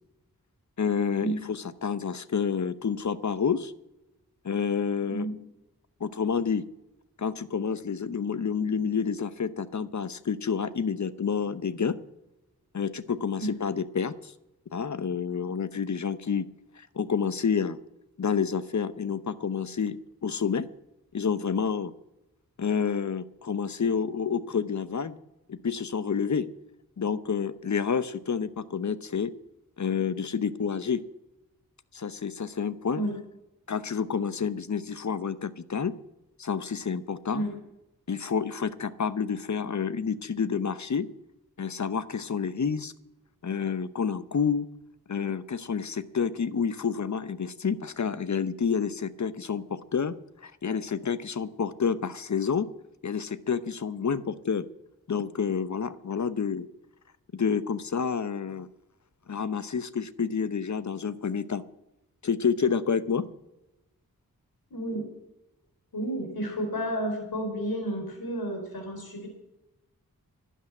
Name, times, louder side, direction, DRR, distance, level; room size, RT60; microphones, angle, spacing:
voice 1, 0.8-3.7 4.4-5.3 6.0-6.6 7.2-12.0 12.7-14.3 14.7-16.5 16.8-17.8 18.2-20.0 20.2-20.7 21.1-21.9 22.6-25.1 25.5-26.5 27.0-29.3 29.8-31.0 31.9-33.0 33.7-35.9 36.4-37.4 38.1-41.1 41.6-42.9 43.4-44.7 45.1-50.1 50.4-52.7 53.0-54.6 55.1-56.7 57.3-58.7 59.3-61.6 62.2-63.3, left 6 dB, 50° left, 15 dB, 0.9 m, -29 dB
voice 2, 64.7-65.0 65.9-69.3, right 1 dB, 75° left, 4 dB, 4.2 m, -31 dB
12.0 x 8.3 x 9.8 m, 0.93 s
cardioid pair, 45°, 36 cm